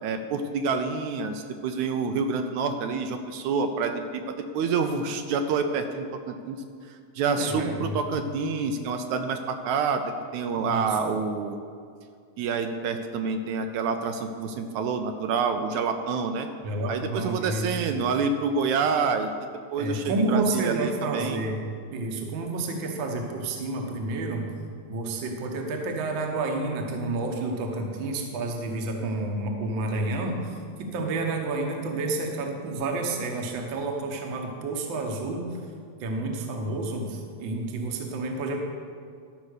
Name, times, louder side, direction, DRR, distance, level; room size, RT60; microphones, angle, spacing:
voice 1, 0.0-6.6 6.9-10.0 10.3-11.6 12.4-16.5 16.9-19.3 19.7-21.4, right 5 dB, 80° right, 7 dB, 1.9 m, -27 dB
voice 2, 7.4-8.0 10.5-11.0 16.6-18.0 19.8-21.6 21.9-24.5 24.9-35.6 36.0-38.6, right 2 dB, 55° right, 2 dB, 1.4 m, -30 dB
12.0 x 5.8 x 6.4 m, 2.2 s
omnidirectional pair, 3.4 m